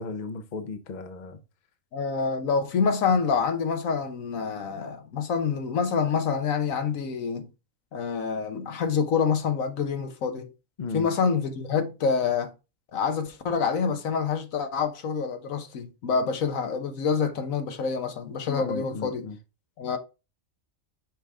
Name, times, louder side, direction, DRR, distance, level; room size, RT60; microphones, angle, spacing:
voice 1, 0.0-1.4 10.8-11.1 18.6-19.3, left 4 dB, 40° left, 0.8 m, -35 dB
voice 2, 1.9-7.5 7.9-10.5 10.9-12.5 12.9-19.3 19.8-20.0, left 5 dB, 75° left, 1.3 m, -27 dB
6.5 x 4.8 x 3.5 m
omnidirectional pair, 1.4 m